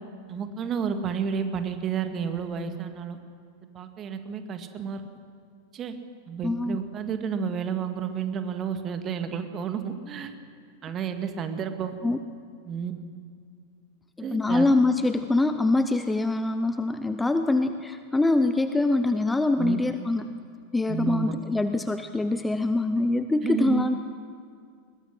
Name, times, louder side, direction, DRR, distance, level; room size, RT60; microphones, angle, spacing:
voice 1, 0.3-3.2 3.8-5.0 5.7-5.9 6.3-10.3 10.8-11.9 12.7-12.9 14.2-14.7 19.6-19.8 20.9-21.3 23.4-23.9, right 7 dB, 30° right, 7 dB, 2.0 m, -31 dB
voice 2, 6.4-6.8 12.0-12.2 14.2-20.4 20.7-24.0, left 2 dB, 10° left, 10 dB, 0.8 m, -24 dB
21.5 x 21.0 x 6.4 m, 2.2 s
figure-of-eight pair, 90°, 0 cm